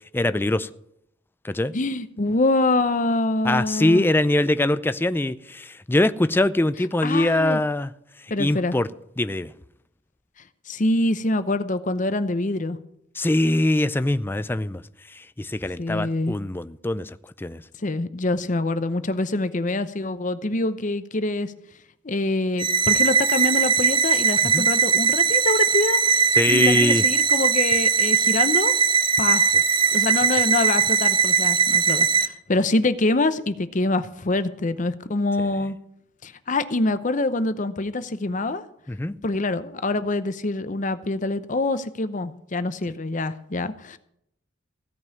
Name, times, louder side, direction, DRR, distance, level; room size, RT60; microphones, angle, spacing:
voice 1, 0.1-0.7 1.4-1.7 3.4-7.9 8.4-8.9 9.2-9.5 13.2-14.8 15.1-17.6 24.5-24.6 26.3-27.0 38.9-39.1, left 1 dB, 10° left, 13 dB, 0.4 m, -23 dB
voice 2, 1.7-4.0 7.0-7.6 8.3-8.8 10.7-12.8 15.8-16.4 17.8-21.5 22.0-28.7 29.2-29.4 29.9-35.8 36.2-38.6 39.2-44.0, left 2 dB, 40° left, 12 dB, 0.8 m, -25 dB
sound 1, 22.6-32.3, right 6 dB, 25° right, 0.7 m, -20 dB
16.5 x 5.4 x 9.4 m, 0.76 s
head